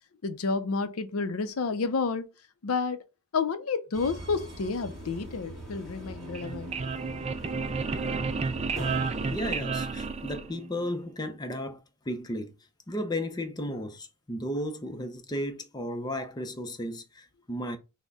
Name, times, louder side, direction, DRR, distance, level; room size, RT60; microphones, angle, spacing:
voice 1, 0.2-2.3 2.6-3.0 3.3-6.7, left 4 dB, 85° left, 0.6 m, -30 dB
Subway metro underground, 3.9-9.4, equal, 5° right, 2.2 m, -42 dB
sound 1, 6.2-10.9, right 4 dB, 30° right, 0.3 m, -31 dB
voice 2, 9.3-11.8 12.1-12.5 12.9-17.8, left 1 dB, 20° left, 0.6 m, -34 dB
6.3 x 2.1 x 3.4 m
head